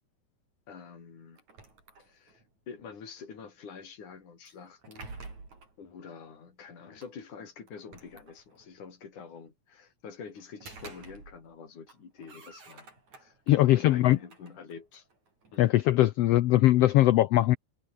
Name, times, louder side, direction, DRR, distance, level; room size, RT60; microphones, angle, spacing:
voice 1, 0.7-1.4 2.0-5.1 5.8-13.4 13.7-15.1 15.5-15.7, left 6 dB, 70° left, 5.8 m, -47 dB
sound 1, 1.4-2.5 4.5-5.8 7.0-7.1 7.7-8.8 10.4-11.6 11.9-13.5 14.0-15.6, right 3 dB, 60° right, 8.4 m, -49 dB
voice 2, 13.5-14.2 15.6-17.6, left 15 dB, 85° left, 1.3 m, -21 dB
omnidirectional pair, 3.7 m